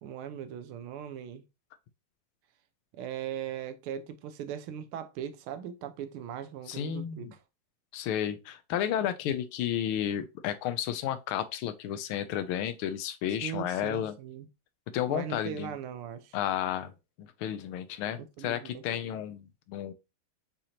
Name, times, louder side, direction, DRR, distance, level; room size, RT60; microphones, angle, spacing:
voice 1, 0.0-1.4 2.9-7.4 13.4-14.5 15.1-16.4 18.2-19.2, right 9 dB, 85° right, 1.5 m, -39 dB
voice 2, 6.7-7.3 7.9-14.1 14.9-15.7 16.3-16.9 17.2-19.9, left 10 dB, 85° left, 1.5 m, -32 dB
6.3 x 2.8 x 2.8 m
omnidirectional pair, 2.3 m